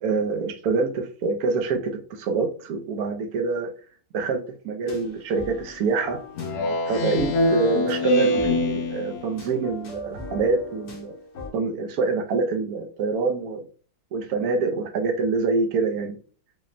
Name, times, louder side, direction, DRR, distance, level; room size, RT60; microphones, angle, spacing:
voice 1, 0.0-3.7 4.1-4.4 4.6-6.2 6.9-11.1 11.5-13.6 14.1-16.2, right 4 dB, 75° right, 4 dB, 0.8 m, -26 dB
sound 1, 4.9-11.5, left 2 dB, 70° left, 1.8 m, -40 dB
Speech synthesizer, 6.4-9.4, left 2 dB, 90° left, 1.7 m, -23 dB
5.9 x 2.1 x 2.5 m, 0.41 s
omnidirectional pair, 2.3 m